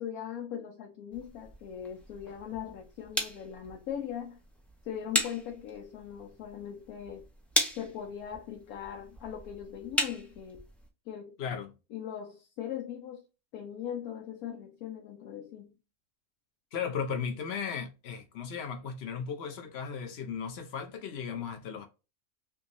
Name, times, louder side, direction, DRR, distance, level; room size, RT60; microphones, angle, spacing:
voice 1, 0.0-4.4 4.9-7.2 7.8-10.6 11.1-11.4 11.9-13.2 13.5-15.8, left 9 dB, 85° left, 1.1 m, -40 dB
sound 1, 1.1-10.9, equal, ahead, 0.4 m, -37 dB
voice 2, 11.4-11.7 16.7-21.9, left 6 dB, 55° left, 0.8 m, -36 dB
3.5 x 2.9 x 2.5 m
omnidirectional pair, 1.5 m